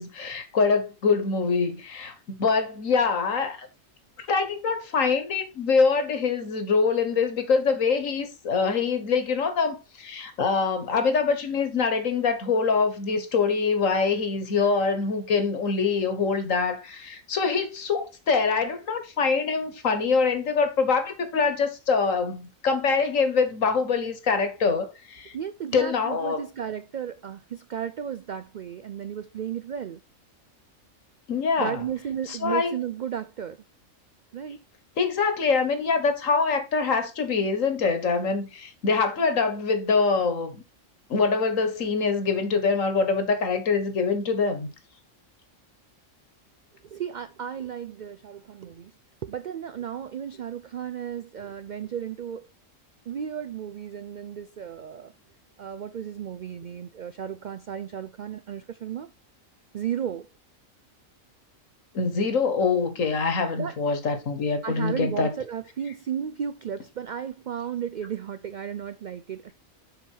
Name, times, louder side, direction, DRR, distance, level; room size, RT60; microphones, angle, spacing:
voice 1, 0.0-3.7 4.3-25.3 25.7-26.5 31.3-31.8 32.3-32.7 35.0-40.6 41.1-44.7 61.9-65.3, left 5 dB, 80° left, 1.7 m, -24 dB
voice 2, 25.3-30.0 31.6-33.6 34.3-34.6 46.9-48.9 49.2-52.4 53.1-55.1 55.6-59.1 59.7-60.3 63.6-63.7 64.6-69.5, right 8 dB, 80° right, 0.4 m, -34 dB
7.2 x 5.1 x 4.5 m
omnidirectional pair, 1.3 m